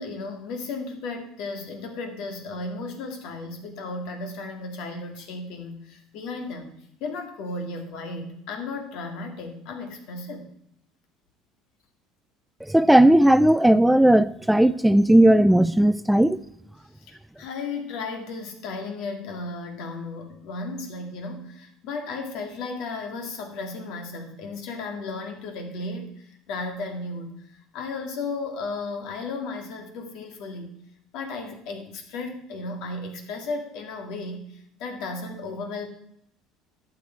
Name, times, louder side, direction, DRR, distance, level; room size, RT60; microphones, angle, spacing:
voice 1, 0.0-6.7 7.0-10.5 17.0-30.7 31.1-35.9, left 3 dB, 70° left, 4 dB, 2.1 m, -34 dB
voice 2, 12.7-16.4, right 1 dB, 5° right, 14 dB, 0.3 m, -16 dB
11.5 x 6.8 x 4.5 m, 0.74 s
supercardioid pair, 100°, 0 cm